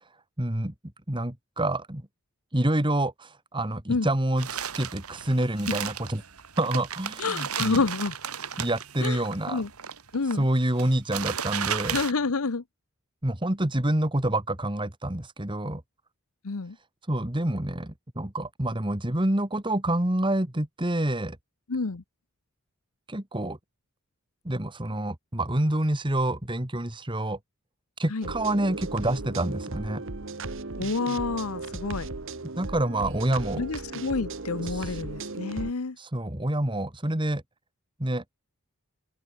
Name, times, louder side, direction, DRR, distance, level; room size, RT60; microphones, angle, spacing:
voice 1, 0.4-0.7 1.1-2.0 2.5-6.2 6.6-7.8 8.6-9.6 10.3-12.0 13.2-15.8 17.1-21.4 23.1-23.6 24.4-27.4 28.0-30.0 32.6-33.6 34.7-34.9 36.0-37.4 38.0-38.2, right 1 dB, 20° right, 1.9 m, -27 dB
sound 1, 4.4-12.1, right 8 dB, 80° right, 3.1 m, -34 dB
voice 2, 7.2-8.2 9.0-9.2 9.5-9.7 10.1-10.5 11.9-12.6 16.4-16.8 21.7-22.0 28.1-28.3 30.8-32.1 33.6-36.0, left 4 dB, 75° left, 0.9 m, -28 dB
sound 2, 28.2-35.7, right 3 dB, 60° right, 1.3 m, -36 dB
head